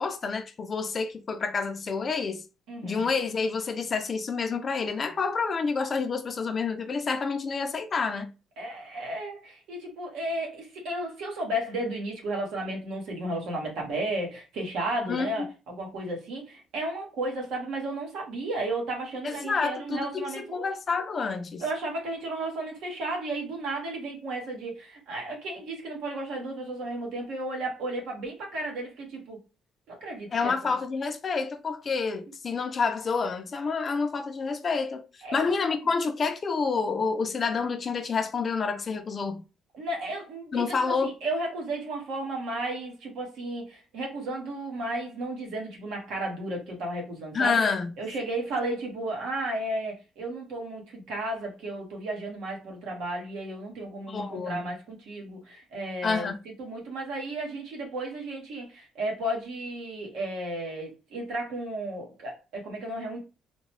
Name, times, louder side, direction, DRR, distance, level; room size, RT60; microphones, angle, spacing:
voice 1, 0.0-2.4 2.8-8.3 15.1-15.4 19.2-21.6 30.3-35.0 35.3-39.4 40.5-41.1 47.3-47.9 54.1-54.6 56.0-56.4, left 5 dB, 30° left, 0.4 m, -28 dB
voice 2, 2.7-3.0 8.6-20.7 21.6-29.4 29.9-30.5 35.2-35.4 39.7-47.6 48.0-56.3 56.6-63.2, right 1 dB, 75° right, 1.4 m, -33 dB
3.7 x 2.2 x 3.0 m
cardioid pair, 145°, 0 cm